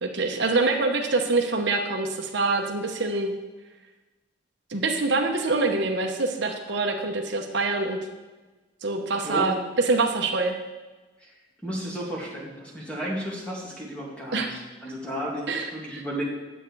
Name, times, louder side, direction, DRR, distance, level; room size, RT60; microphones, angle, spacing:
voice 1, 0.0-3.3 4.7-8.0 8.8-9.6 9.8-10.6 14.3-14.5 15.5-16.0, right 3 dB, 65° right, 3 dB, 0.9 m, -25 dB
voice 2, 11.6-16.2, equal, 5° left, -4 dB, 2.3 m, -33 dB
9.2 x 7.9 x 4.7 m, 1.2 s
head